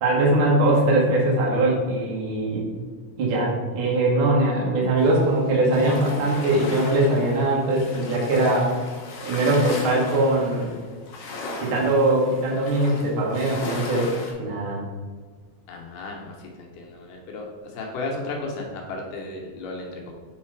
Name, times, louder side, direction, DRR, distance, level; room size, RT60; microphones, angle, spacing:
voice 1, 0.0-2.6 3.2-8.7 9.2-10.7 11.6-14.1 14.4-14.8, right 1 dB, 75° right, -3 dB, 1.2 m, -21 dB
sound 1, 5.0-14.3, left 2 dB, 90° left, 1.3 m, -37 dB
voice 2, 15.7-17.5 17.7-20.1, left 2 dB, 70° left, 0 dB, 2.3 m, -34 dB
5.5 x 4.1 x 4.6 m, 1.5 s
omnidirectional pair, 4.4 m